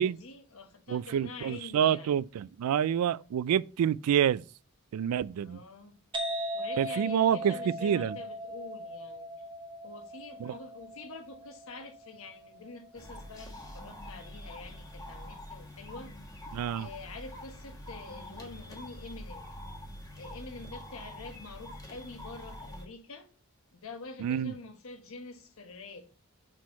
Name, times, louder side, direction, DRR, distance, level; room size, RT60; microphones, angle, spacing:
voice 1, 0.0-2.1 5.4-6.0 6.5-9.3 9.8-16.1 16.7-19.5 20.2-23.3 23.7-26.1, left 3 dB, 65° left, 1.1 m, -46 dB
voice 2, 0.9-4.4 4.9-5.6 6.8-7.5 7.8-8.2 10.4-10.5 16.5-16.9 24.2-24.5, right 9 dB, 85° right, 0.3 m, -27 dB
sound 1, 6.1-13.6, equal, 25° right, 0.9 m, -39 dB
sound 2, 12.9-22.9, left 1 dB, 15° left, 1.2 m, -45 dB
6.2 x 4.4 x 4.1 m
head